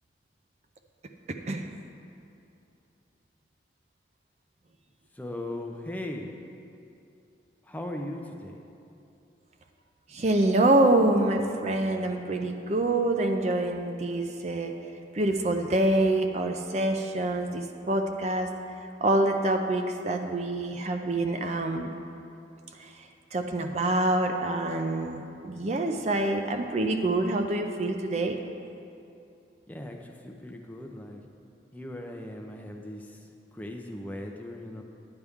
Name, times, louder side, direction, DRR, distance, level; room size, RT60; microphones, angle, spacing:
voice 1, 1.3-1.7 10.1-14.7 15.1-18.5 19.0-21.9 23.3-28.4, right 2 dB, 40° right, 5 dB, 0.5 m, -26 dB
voice 2, 5.1-6.3 7.6-8.6 29.7-31.2 31.7-34.8, left 1 dB, 10° left, 1 dB, 0.6 m, -38 dB
11.0 x 9.7 x 3.6 m, 2.7 s
head